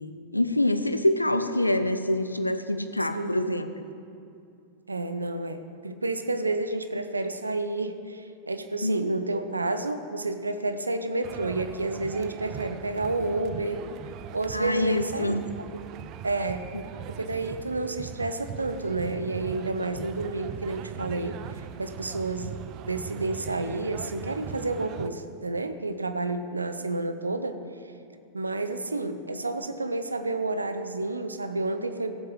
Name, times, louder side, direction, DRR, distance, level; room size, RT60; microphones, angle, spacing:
voice 1, 0.0-3.7 8.8-9.1 14.5-15.4, left 1 dB, 85° left, 10 dB, 0.5 m, -26 dB
voice 2, 3.1-3.7 4.9-13.9 14.3-15.8 16.2-16.7 17.2-27.6 28.3-32.1, right 2 dB, 80° right, 9 dB, 0.6 m, -30 dB
sound 1, 11.2-25.1, right 10 dB, 40° right, 0.5 m, -40 dB
16.0 x 7.6 x 4.7 m, 2.6 s
figure-of-eight pair, 90°, 0 cm